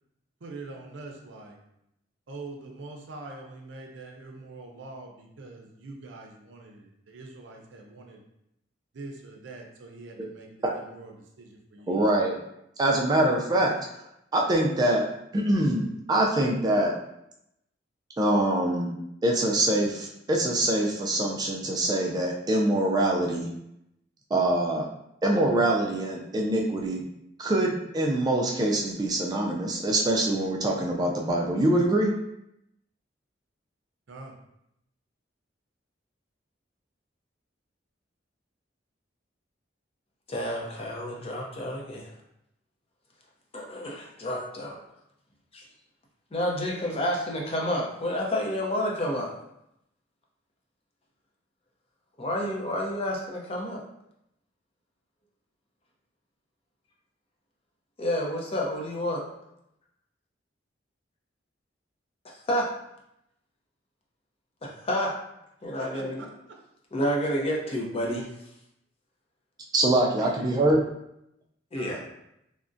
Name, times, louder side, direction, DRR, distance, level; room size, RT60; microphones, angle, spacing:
voice 1, 0.4-1.6 2.3-8.2 8.9-12.0 34.1-34.3 65.8-66.6 70.2-70.5 71.7-72.0, right 3 dB, 80° right, 1 dB, 0.5 m, -44 dB
voice 2, 11.9-12.4 12.8-13.7 14.3-15.1 15.3-16.9 18.2-18.9 19.2-23.5 24.3-24.8 25.2-27.0 27.4-32.1 69.7-70.8, right 1 dB, 20° right, -1 dB, 0.3 m, -24 dB
voice 3, 40.3-42.1 43.5-44.8 45.5-45.6 46.3-49.3 52.2-53.8 58.0-59.2 62.2-62.6 64.6-65.1 65.6-66.2 66.9-68.3 71.7-72.0, equal, 30° left, -2 dB, 0.6 m, -29 dB
3.5 x 2.1 x 2.5 m, 0.80 s
head